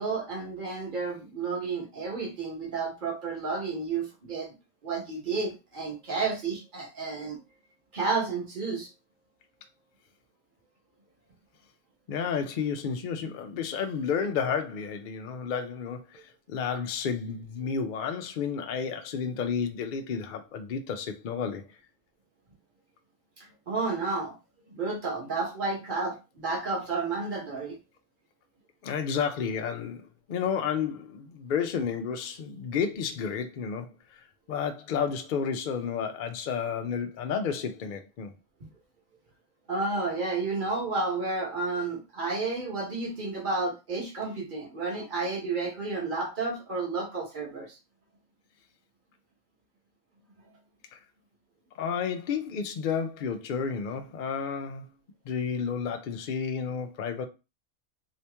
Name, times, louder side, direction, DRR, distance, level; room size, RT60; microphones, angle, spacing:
voice 1, 0.0-4.5 4.8-7.4 7.9-8.9 23.4-24.3 24.7-27.8 39.7-47.7, right 3 dB, 40° right, 1.3 m, -31 dB
voice 2, 12.1-21.6 28.8-38.3 50.9-51.0 51.7-54.9 55.3-57.3, left 6 dB, 65° left, 0.4 m, -31 dB
2.9 x 2.8 x 3.3 m
omnidirectional pair, 1.4 m